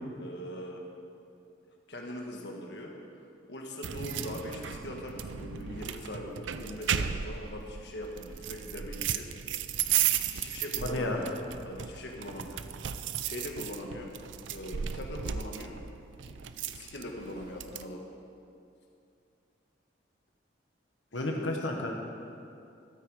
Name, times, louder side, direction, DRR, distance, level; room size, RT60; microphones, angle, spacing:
voice 1, 0.2-0.8 1.9-2.9 3.5-9.3 10.3-12.6 13.2-14.1 14.5-15.8 16.2-16.4 16.7-18.0 21.1-21.6, left 1 dB, 65° left, 0 dB, 1.4 m, -41 dB
sound 1, 3.8-17.9, right 9 dB, 80° right, 0.5 m, -35 dB
voice 2, 10.8-11.2 21.1-21.9, left 2 dB, 85° left, 1 dB, 1.5 m, -31 dB
13.5 x 12.5 x 4.8 m, 2.6 s
head